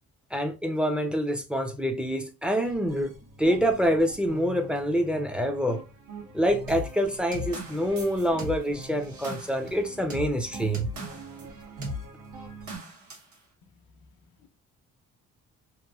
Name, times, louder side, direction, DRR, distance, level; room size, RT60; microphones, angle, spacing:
voice 1, 0.3-5.8 6.3-10.9, equal, 5° right, 0.5 m, -26 dB
sound 1, 2.6-12.8, right 2 dB, 90° right, 1.4 m, -44 dB
sound 2, 6.7-11.5 11.8-12.0 12.7-13.3, left 1 dB, 70° right, 1.5 m, -38 dB
voice 2, 13.6-14.0 14.4-14.5, left 4 dB, 75° left, 0.6 m, -58 dB
3.0 x 2.5 x 2.3 m
cardioid pair, 90°, 30 cm